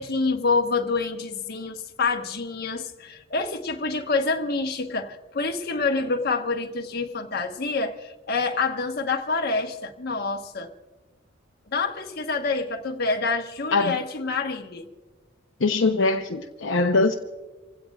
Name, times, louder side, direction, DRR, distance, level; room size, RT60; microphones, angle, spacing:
voice 1, 0.0-10.7 11.7-14.9, left 3 dB, 55° left, 1.2 m, -27 dB
voice 2, 15.6-17.1, left 3 dB, 70° left, 0.8 m, -22 dB
28.0 x 16.5 x 2.4 m
head